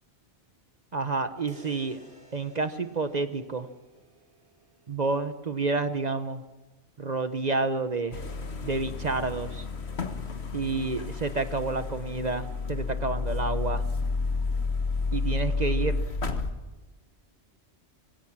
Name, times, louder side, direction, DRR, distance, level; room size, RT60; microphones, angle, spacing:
voice 1, 0.9-2.0 2.3-3.7 4.9-6.4 7.0-8.2 8.6-9.7 10.5-13.8 15.1-16.0, right 3 dB, 40° right, 10 dB, 0.9 m, -29 dB
sound 1, 1.5-5.5, equal, 60° right, 4.8 m, -55 dB
sound 2, 8.1-16.5, left 4 dB, 65° left, 1.8 m, -31 dB
25.5 x 18.0 x 6.1 m, 1.2 s
omnidirectional pair, 1.2 m